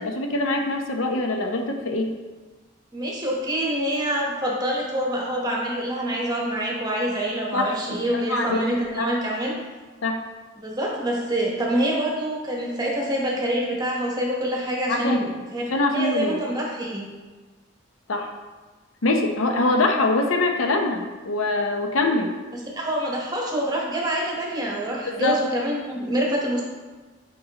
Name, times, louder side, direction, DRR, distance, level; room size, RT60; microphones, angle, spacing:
voice 1, 0.0-2.1 7.5-7.8 8.1-8.6 8.9-9.1 10.0-10.2 14.9-15.3 15.7-16.4 18.1-18.3 19.0-22.3 25.1-25.4, left 2 dB, 90° left, 3 dB, 0.7 m, -23 dB
voice 2, 2.9-9.5 10.6-15.6 15.9-17.0 22.7-26.6, right 1 dB, 20° right, -2 dB, 1.0 m, -26 dB
6.4 x 5.4 x 2.9 m, 1.3 s
head